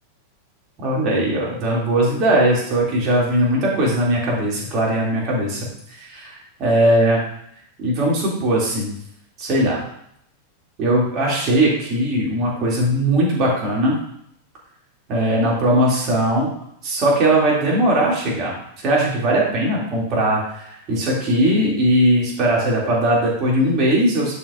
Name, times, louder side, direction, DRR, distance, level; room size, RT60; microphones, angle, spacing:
voice 1, 0.8-5.7 6.0-7.2 7.8-8.9 9.4-9.8 10.8-14.0 15.1-16.5 16.8-18.5 18.8-24.4, right 1 dB, 35° right, -4 dB, 2.8 m, -19 dB
11.0 x 5.2 x 2.6 m, 0.71 s
figure-of-eight pair, 90°, 0 cm